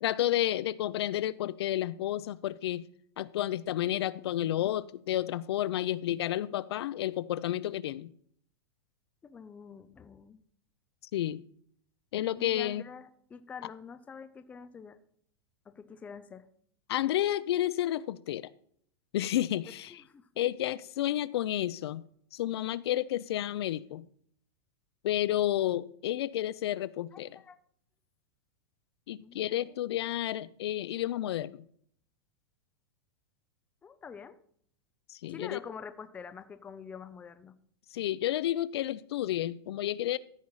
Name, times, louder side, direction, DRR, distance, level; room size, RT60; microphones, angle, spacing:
voice 1, 0.0-2.8 3.2-8.1 11.1-11.4 12.1-12.8 16.9-18.5 19.1-19.9 20.4-22.0 22.3-24.0 25.0-27.3 29.1-31.6 35.1-35.6 37.9-40.2, left 13 dB, 75° left, 0.5 m, -31 dB
voice 2, 9.2-10.4 12.4-15.0 15.7-16.5 19.9-20.3 27.1-27.6 29.2-29.8 33.8-34.4 35.3-37.5, left 6 dB, 10° left, 0.5 m, -46 dB
14.0 x 5.4 x 4.8 m
supercardioid pair, 160°, 14 cm